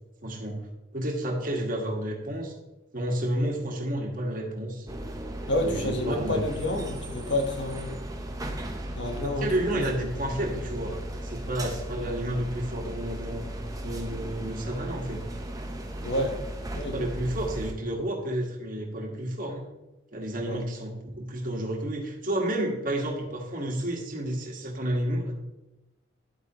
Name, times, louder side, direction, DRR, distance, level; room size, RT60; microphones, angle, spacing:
voice 1, 0.2-0.6 0.9-2.5 2.9-4.9 5.6-6.4 9.2-11.0 11.2-13.4 13.8-15.2 16.9-19.6 20.1-25.3, right 1 dB, 45° right, 1 dB, 1.6 m, -30 dB
sound 1, 4.9-17.7, right 1 dB, 20° right, 0.8 m, -36 dB
voice 2, 5.5-7.9 8.9-9.5 9.7-9.8 16.0-16.3 16.7-17.0 20.4-20.6, left 1 dB, 60° left, 4 dB, 1.4 m, -29 dB
10.5 x 8.3 x 3.0 m, 0.98 s
head